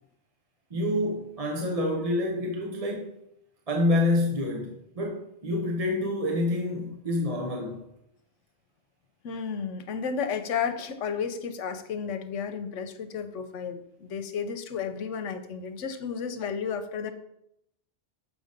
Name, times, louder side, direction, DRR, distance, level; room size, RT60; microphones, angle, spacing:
voice 1, 0.7-3.2 3.7-7.9, left 1 dB, 35° right, 0.8 m, -27 dB
voice 2, 9.2-17.1, left 6 dB, 90° left, 1.1 m, -32 dB
6.5 x 5.3 x 5.2 m
omnidirectional pair, 1.2 m